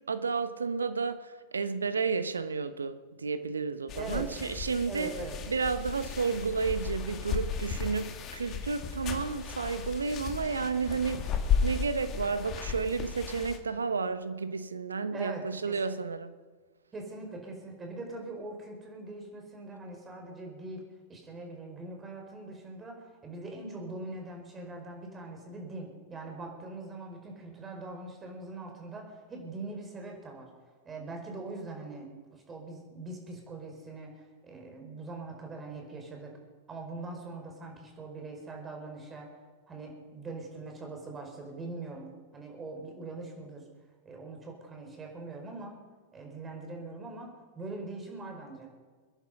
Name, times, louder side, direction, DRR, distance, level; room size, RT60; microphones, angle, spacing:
voice 1, 0.0-5.1 5.5-11.3 11.6-16.3, right 4 dB, 80° right, 12 dB, 1.0 m, -32 dB
sound 1, 3.9-13.6, left 6 dB, 35° left, 2.0 m, -35 dB
voice 2, 3.9-4.3 4.9-5.4 15.1-16.0 16.9-20.8 21.1-30.5 30.8-36.3 36.7-39.3 39.7-43.6 44.0-45.8 46.1-48.7, right 2 dB, 20° right, 1 dB, 4.8 m, -42 dB
24.0 x 10.5 x 5.4 m, 1.5 s
figure-of-eight pair, 100°, 0 cm